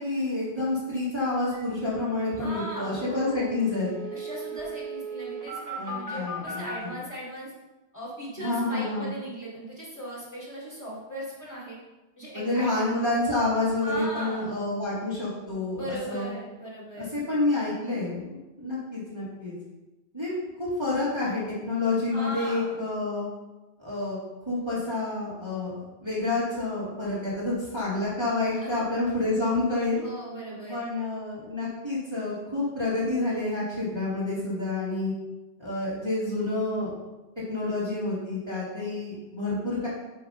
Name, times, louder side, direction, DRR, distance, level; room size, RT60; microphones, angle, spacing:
voice 1, 0.0-3.9 5.8-6.9 8.4-9.1 12.3-16.3 17.0-19.5 20.1-20.3 20.6-23.3 23.8-24.2 24.4-30.0 30.6-35.1 35.6-36.9 37.5-39.9, left 2 dB, 25° right, -9 dB, 2.2 m, -28 dB
sound 1, 1.5-1.6 1.9-2.0 2.2-6.8, right 3 dB, 60° left, 3.1 m, -37 dB
voice 2, 2.4-3.5 4.1-7.5 7.9-11.8 12.2-12.7 13.8-14.5 15.7-17.1 22.1-22.8 28.5-28.9 30.0-30.9, equal, 15° left, -7 dB, 2.4 m, -38 dB
7.3 x 3.9 x 5.4 m, 1.1 s
omnidirectional pair, 1.1 m